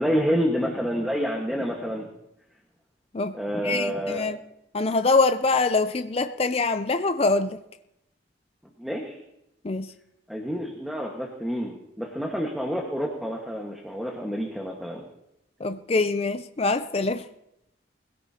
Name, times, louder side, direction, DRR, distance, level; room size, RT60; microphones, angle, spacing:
voice 1, 0.0-2.1 3.3-4.2 8.8-9.2 10.3-15.0, equal, ahead, -1 dB, 1.4 m, -28 dB
voice 2, 3.6-4.4 4.7-7.6 9.6-9.9 15.6-17.3, left 3 dB, 30° left, 10 dB, 0.5 m, -24 dB
21.0 x 16.5 x 2.9 m, 0.83 s
head